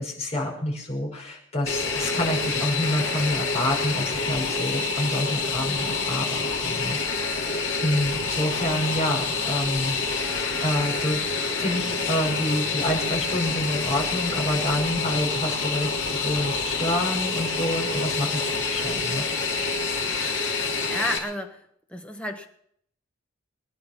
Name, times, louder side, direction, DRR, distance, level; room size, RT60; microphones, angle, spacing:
voice 1, 0.0-11.2 11.6-19.3, left 1 dB, 35° left, -1 dB, 5.6 m, -28 dB
Fixed-wing aircraft airplane, 1.7-21.2, left 4 dB, 70° left, 3.3 m, -27 dB
voice 2, 20.9-22.5, left 1 dB, 5° left, 4 dB, 1.5 m, -32 dB
23.0 x 10.5 x 5.9 m, 0.69 s
head